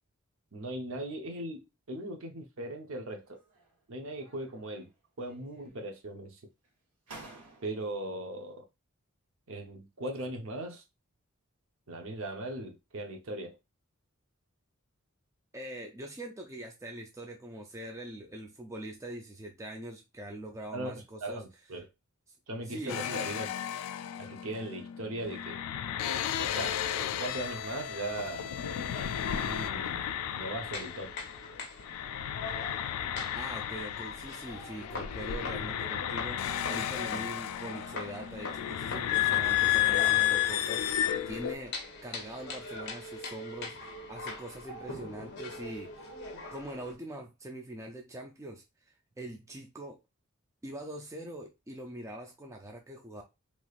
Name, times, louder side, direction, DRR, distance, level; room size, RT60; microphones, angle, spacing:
voice 1, 0.5-3.4 3.9-4.9 5.2-6.4 7.6-8.6 9.5-10.8 11.9-13.6 20.7-21.9 22.5-23.5 24.2-25.6 26.4-28.5 29.2-31.1, right 1 dB, 65° right, 0.7 m, -39 dB
sound 1, 3.2-3.8 4.2-4.9 5.2-6.0 6.6-6.7 7.1-8.0, right 2 dB, 90° right, 1.2 m, -52 dB
voice 2, 15.5-21.4 22.6-23.2 33.4-41.7 42.0-45.9 46.5-50.0 50.6-53.2, right 1 dB, 15° right, 0.4 m, -43 dB
sound 2, 22.9-31.5 31.8-41.6, left 12 dB, 85° left, 0.3 m, -32 dB
sound 3, 27.4-46.9, left 3 dB, 50° left, 0.7 m, -43 dB
3.1 x 3.0 x 2.4 m
head